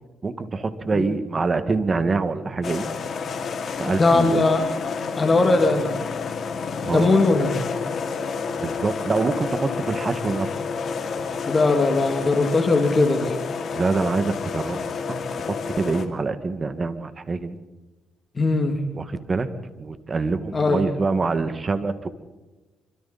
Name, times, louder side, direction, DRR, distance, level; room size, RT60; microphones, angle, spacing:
voice 1, 0.2-2.9 3.8-4.4 6.8-7.1 8.6-10.5 13.7-17.6 18.9-19.5 19.8-22.1, right 3 dB, 35° right, 10 dB, 2.1 m, -25 dB
sound 1, 2.6-16.1, left 5 dB, 55° left, 2.7 m, -30 dB
voice 2, 3.9-4.6 5.2-6.0 6.9-7.7 11.5-13.4 18.4-18.8 20.5-20.8, left 3 dB, 30° left, 4 dB, 3.0 m, -20 dB
26.5 x 25.0 x 4.4 m, 1.1 s
cardioid pair, 90°, 0 cm